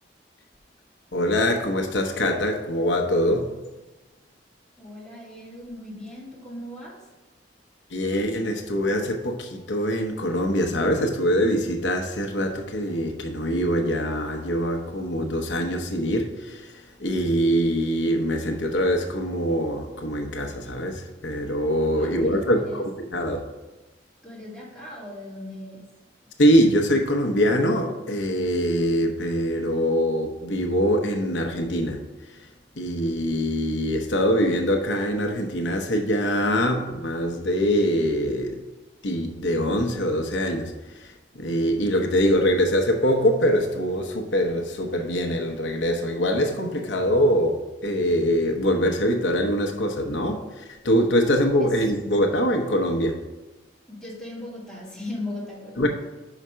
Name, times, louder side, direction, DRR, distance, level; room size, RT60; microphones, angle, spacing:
voice 1, 1.1-3.5 7.9-23.4 26.4-32.0 32.8-38.6 39.0-53.2 55.8-55.9, equal, 85° left, 3 dB, 0.9 m, -23 dB
voice 2, 4.8-7.1 21.9-22.8 24.2-25.9 51.8-52.0 53.9-55.9, left 1 dB, 5° left, -7 dB, 2.3 m, -38 dB
5.6 x 5.0 x 6.2 m, 1.1 s
head